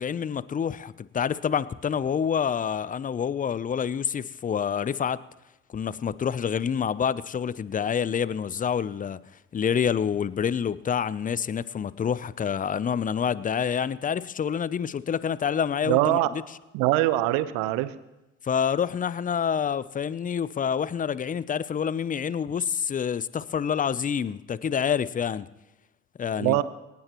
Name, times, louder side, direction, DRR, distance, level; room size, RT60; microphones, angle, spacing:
voice 1, 0.0-5.2 5.7-9.2 9.5-16.4 18.4-25.5 26.2-26.6, left 7 dB, 20° left, 0.6 m, -27 dB
voice 2, 15.8-16.3 16.7-17.9 26.4-26.6, right 16 dB, 65° right, 1.1 m, -23 dB
22.0 x 19.0 x 3.1 m
hypercardioid pair, 65°, 37 cm